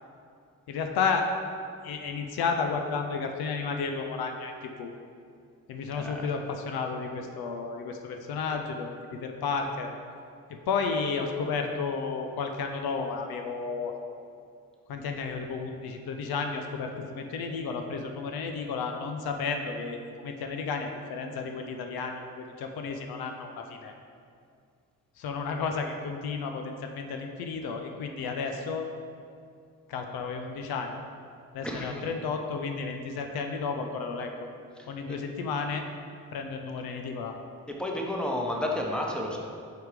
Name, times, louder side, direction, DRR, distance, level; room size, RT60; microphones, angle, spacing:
voice 1, 0.7-1.3 1.8-4.9 5.7-9.9 10.5-13.9 14.9-23.9 25.2-28.9 29.9-31.0 31.5-34.5 34.9-35.8 36.3-37.4, left 5 dB, 80° left, 4 dB, 0.6 m, -32 dB
voice 2, 5.9-6.3 31.6-32.1 35.1-35.2 37.7-39.4, left 1 dB, ahead, 0 dB, 1.1 m, -31 dB
4.9 x 4.6 x 5.0 m, 2.3 s
supercardioid pair, 50°, 36 cm